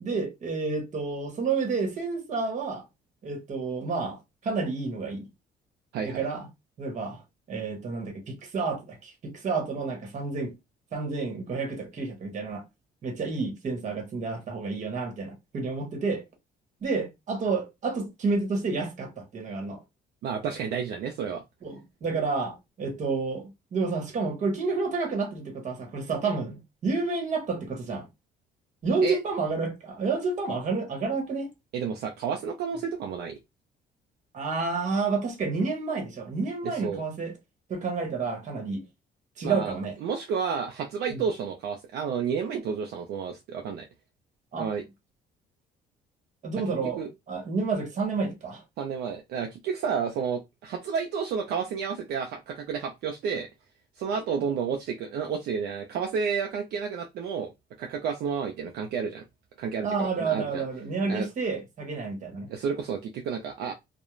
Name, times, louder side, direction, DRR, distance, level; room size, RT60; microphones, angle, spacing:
voice 1, 0.0-2.8 3.2-5.3 6.0-6.5 6.8-7.2 7.5-9.1 9.4-10.5 10.9-12.6 13.0-16.2 16.8-19.8 21.6-28.1 28.8-31.5 34.3-37.3 37.7-38.8 39.4-39.9 41.1-41.2 44.5-44.7 46.4-48.6 59.8-62.5, right 4 dB, 45° right, 1.1 m, -30 dB
voice 2, 5.9-6.3 20.2-21.4 29.0-29.2 31.7-33.4 36.6-37.0 39.4-39.7 40.0-43.9 44.6-44.8 47.0-47.1 48.8-53.5 54.0-57.5 57.8-59.2 59.6-60.6 61.1-61.3 62.5-63.7, right 6 dB, 70° right, 0.4 m, -31 dB
2.3 x 2.0 x 3.0 m
cardioid pair, 110°, 17 cm